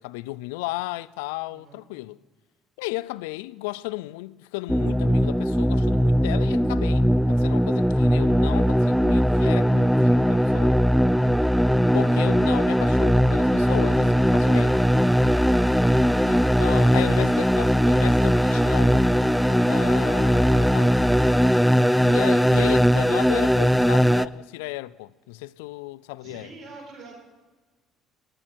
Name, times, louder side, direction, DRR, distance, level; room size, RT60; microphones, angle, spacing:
voice 1, 0.0-2.2 2.8-10.8 11.9-14.9 16.3-19.1 19.4-21.0 22.0-26.5, left 19 dB, 90° left, 0.3 m, -34 dB
voice 2, 1.5-1.8 11.7-12.0 26.2-27.1, right 4 dB, 60° right, 4.5 m, -47 dB
sound 1, 4.7-24.3, equal, ahead, 0.4 m, -20 dB
15.0 x 12.0 x 4.6 m
supercardioid pair, 75°, 0 cm